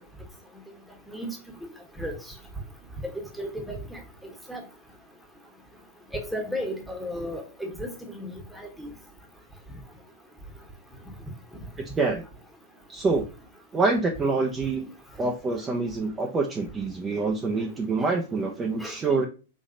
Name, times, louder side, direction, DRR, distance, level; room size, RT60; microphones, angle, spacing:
voice 1, 3.0-4.0 4.5-4.6 6.1-8.9 18.8-19.2, equal, ahead, 2 dB, 1.2 m, -34 dB
voice 2, 12.9-13.3 13.7-14.9 15.2-19.3, right 3 dB, 15° right, 1 dB, 0.7 m, -26 dB
4.2 x 3.0 x 3.8 m, 0.34 s
figure-of-eight pair, 105°, 0 cm